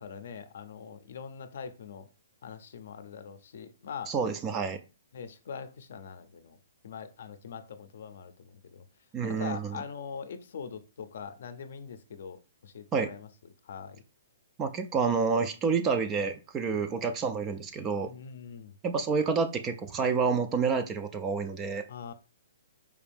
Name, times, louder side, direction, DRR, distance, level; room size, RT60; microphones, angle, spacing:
voice 1, 0.0-2.1 2.4-4.1 5.1-6.6 6.8-8.9 9.2-13.3 13.6-14.0 15.6-15.8 16.7-16.8 18.0-18.8 21.9-22.1, left 6 dB, 55° left, 0.5 m, -43 dB
voice 2, 4.1-4.8 9.1-9.8 12.9-13.1 14.6-18.1 18.8-21.8, right 5 dB, 15° right, 0.3 m, -29 dB
4.8 x 2.6 x 3.4 m
hypercardioid pair, 170°, 0 cm